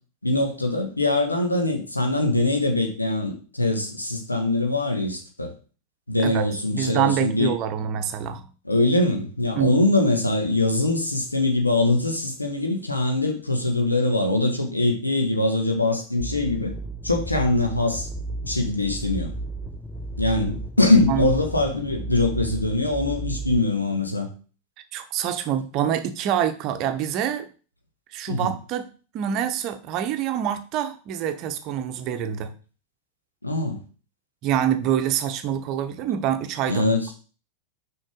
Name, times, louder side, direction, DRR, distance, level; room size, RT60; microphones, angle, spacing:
voice 1, 0.2-5.5 6.1-7.5 8.6-16.7 17.0-18.1 18.4-19.3 20.2-24.3 28.3-28.5 33.4-33.8 36.7-37.1, left 2 dB, 85° left, 3 dB, 1.4 m, -23 dB
voice 2, 6.7-8.4 9.6-9.8 21.1-21.4 24.9-27.5 28.1-28.8 29.1-32.5 34.4-36.9, right 9 dB, 40° right, 9 dB, 0.8 m, -26 dB
sound 1, 16.2-23.6, right 1 dB, ahead, 0.7 m, -33 dB
6.4 x 5.3 x 3.8 m, 0.37 s
figure-of-eight pair, 90°, 0 cm